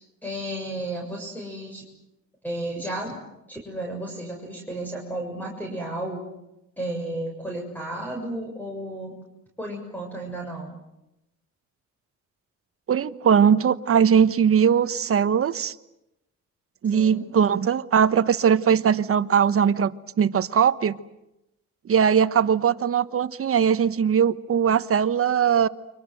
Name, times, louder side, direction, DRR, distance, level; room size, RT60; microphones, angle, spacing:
voice 1, 0.2-1.8 2.4-3.1 3.5-6.2 6.8-9.1 9.6-10.8 16.9-17.2, right 1 dB, 5° left, 0 dB, 7.0 m, -33 dB
voice 2, 12.9-15.7 16.8-21.0 21.8-25.7, right 7 dB, 50° right, 13 dB, 1.2 m, -20 dB
30.0 x 25.0 x 7.9 m, 0.91 s
cardioid pair, 90°, 30 cm